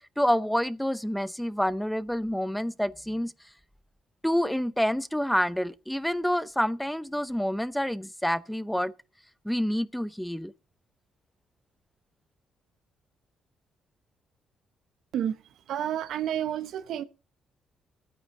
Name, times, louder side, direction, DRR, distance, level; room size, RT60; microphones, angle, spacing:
voice 1, 0.0-3.3 4.2-8.9 9.4-10.5, equal, 5° left, 0.7 m, -28 dB
voice 2, 15.7-17.0, right 10 dB, 75° right, 1.0 m, -30 dB
13.0 x 9.3 x 5.4 m
cardioid pair, 90°, 0 cm